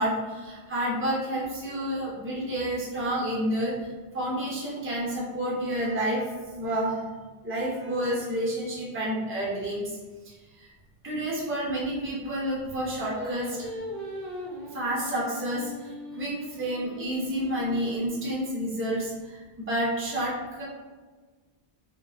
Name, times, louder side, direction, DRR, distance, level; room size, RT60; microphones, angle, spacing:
voice 1, 0.0-7.0 7.4-10.0 10.2-10.7 11.0-13.7 14.7-20.6, right 1 dB, 20° right, -6 dB, 0.4 m, -30 dB
Singing, 13.1-18.4, equal, 60° right, 0.7 m, -40 dB
2.7 x 2.2 x 2.4 m, 1.4 s
omnidirectional pair, 1.2 m